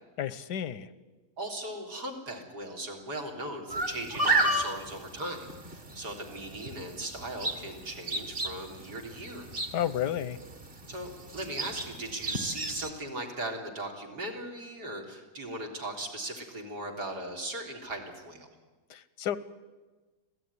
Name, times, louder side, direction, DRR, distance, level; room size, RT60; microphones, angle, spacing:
voice 1, 0.2-0.9 9.7-10.4 18.9-19.4, left 10 dB, 85° left, 16 dB, 1.6 m, -31 dB
voice 2, 1.4-9.5 10.9-18.5, right 1 dB, 80° right, 2 dB, 4.1 m, -38 dB
sound 1, 3.7-12.9, right 2 dB, 35° right, 2.0 m, -33 dB
26.0 x 17.0 x 9.8 m, 1.3 s
omnidirectional pair, 1.7 m